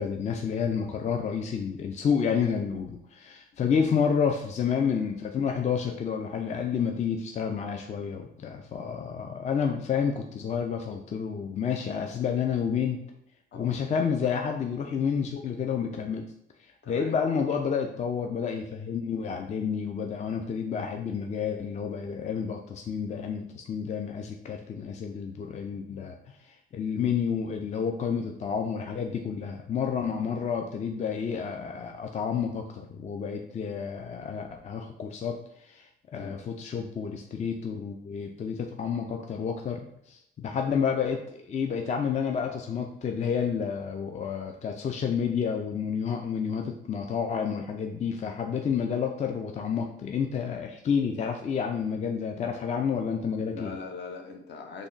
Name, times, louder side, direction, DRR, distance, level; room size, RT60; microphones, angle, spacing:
voice 1, 0.0-13.0 13.5-16.3 16.6-53.7, left 6 dB, 35° left, 3 dB, 0.4 m, -30 dB
voice 2, 3.5-3.9 9.6-9.8 13.5-13.8 16.8-17.2 30.0-30.3 36.2-36.4 53.4-54.9, left 4 dB, 60° left, 3 dB, 0.7 m, -42 dB
3.5 x 2.1 x 3.8 m, 0.78 s
cardioid pair, 90°, 20 cm